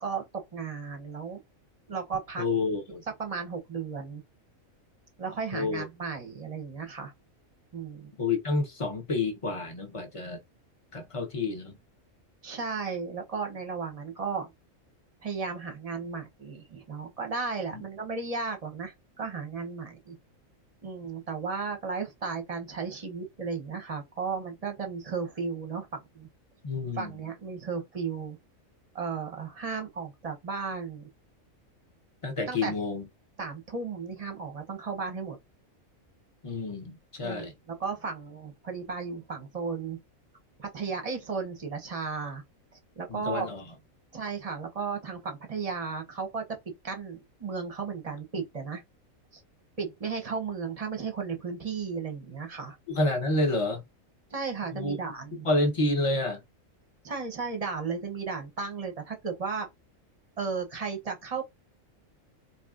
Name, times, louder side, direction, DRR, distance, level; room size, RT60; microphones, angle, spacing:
voice 1, 0.0-1.4 1.9-2.4 3.2-4.2 5.2-7.1 7.7-8.1 12.4-14.5 15.2-20.2 20.8-26.3 26.9-28.4 28.9-31.1 32.5-32.7 33.4-35.4 37.2-37.5 37.8-40.0 40.6-42.4 43.0-43.5 44.1-46.4 46.8-48.8 49.3-49.4 49.8-52.8 54.3-55.5 57.0-59.7 60.4-61.5, right 5 dB, 35° right, 0.7 m, -34 dB
voice 2, 2.4-3.0 5.5-5.8 8.2-10.4 10.9-11.7 17.7-17.8 26.6-27.2 32.2-33.1 36.4-37.5 43.1-43.7 52.9-53.8 54.7-55.0 55.4-56.4, left 2 dB, 30° left, 0.7 m, -29 dB
4.0 x 2.8 x 2.4 m
omnidirectional pair, 1.4 m